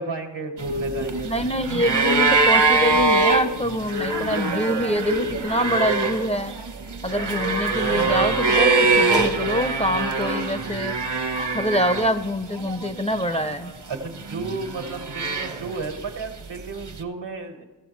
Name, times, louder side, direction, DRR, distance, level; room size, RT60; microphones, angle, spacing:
voice 1, 0.0-1.4 13.9-17.6, right 3 dB, 85° right, 4 dB, 1.5 m, -33 dB
sound 1, 0.6-12.3 12.6-13.5 14.2-15.9 16.9-17.0, right 3 dB, 70° right, 1.0 m, -23 dB
voice 2, 1.2-6.5 7.0-10.9 11.5-13.7, equal, 15° left, 8 dB, 0.4 m, -25 dB
15.5 x 7.6 x 3.1 m, 1.3 s
wide cardioid pair, 60°, 43 cm